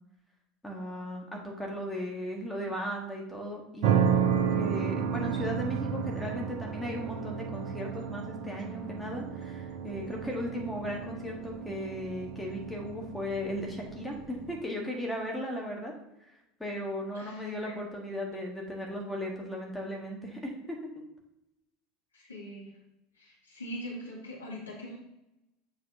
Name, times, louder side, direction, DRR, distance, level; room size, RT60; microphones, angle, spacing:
voice 1, 0.6-4.0 4.5-15.9 16.2-20.8, equal, 5° left, -1 dB, 1.6 m, -36 dB
sound 1, 3.8-14.6, right 7 dB, 55° right, 0.6 m, -32 dB
voice 2, 17.1-17.7 22.1-22.8 23.2-25.0, equal, 80° left, -3 dB, 1.8 m, -42 dB
7.3 x 5.7 x 2.8 m, 0.87 s
figure-of-eight pair, 70°, 0 cm